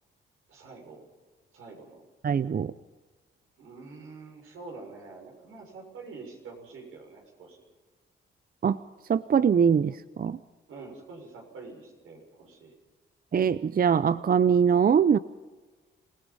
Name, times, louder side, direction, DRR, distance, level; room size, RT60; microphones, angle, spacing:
voice 1, 0.5-1.1 1.5-2.0 3.6-7.6 10.7-12.8, right 3 dB, 85° right, 1 dB, 6.6 m, -46 dB
voice 2, 2.2-2.7 8.6-8.8 9.1-9.9 10.2-10.4 13.3-15.2, right 7 dB, 45° right, 15 dB, 0.6 m, -22 dB
27.0 x 17.5 x 5.5 m, 1.2 s
cardioid pair, 65°, 21 cm